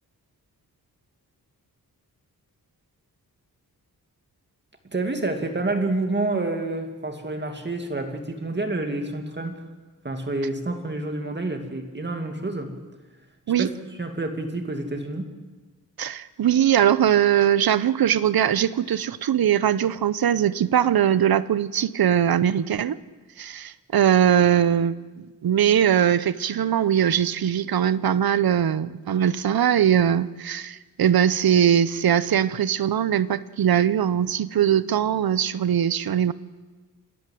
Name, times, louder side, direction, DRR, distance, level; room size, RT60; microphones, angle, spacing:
voice 1, 4.8-9.7 10.0-12.8 13.6-15.3, right 2 dB, 30° right, 5 dB, 2.4 m, -28 dB
voice 2, 16.0-23.0 23.4-36.3, right 9 dB, 75° right, 17 dB, 0.8 m, -21 dB
28.0 x 12.5 x 7.7 m, 1.3 s
wide cardioid pair, 120°, 37 cm